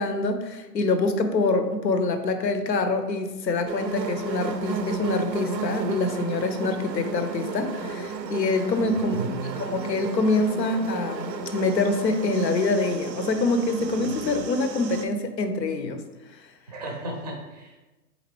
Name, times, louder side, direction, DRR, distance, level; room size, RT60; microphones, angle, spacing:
voice 1, 0.0-16.0, left 2 dB, 85° left, 8 dB, 0.7 m, -25 dB
sound 1, 3.7-15.1, right 4 dB, 85° right, 0.6 m, -33 dB
voice 2, 8.8-9.5 16.7-17.8, right 2 dB, 25° right, 2 dB, 0.5 m, -34 dB
4.1 x 3.9 x 3.0 m, 1.1 s
hypercardioid pair, 135°, 49 cm